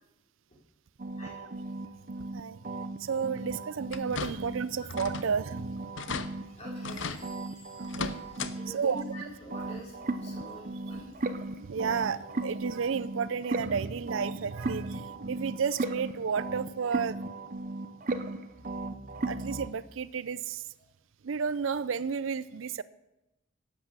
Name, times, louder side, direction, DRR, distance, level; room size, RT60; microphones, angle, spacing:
sound 1, 1.0-4.7 4.9-9.2 9.5-19.7, right 2 dB, 40° right, 0.7 m, -36 dB
voice 1, 3.0-5.9 7.8-8.1 8.7-9.0 11.6-17.2 19.2-20.6 21.2-22.8, right 6 dB, 70° right, 17 dB, 0.5 m, -32 dB
sound 2, 3.9-4.6 4.9-5.3 5.6-5.7 6.0-6.3 6.8-7.2 7.8-8.5 8.9-9.0 10.4-10.5 11.0-11.1, left 5 dB, 65° left, 0.7 m, -36 dB
voice 2, 6.4-7.7 8.5-11.1, equal, 30° left, -3 dB, 4.3 m, -47 dB
Bell / Door, 6.9-9.4, right 2 dB, 20° right, 2.2 m, -58 dB
12.0 x 8.3 x 7.3 m, 0.91 s
head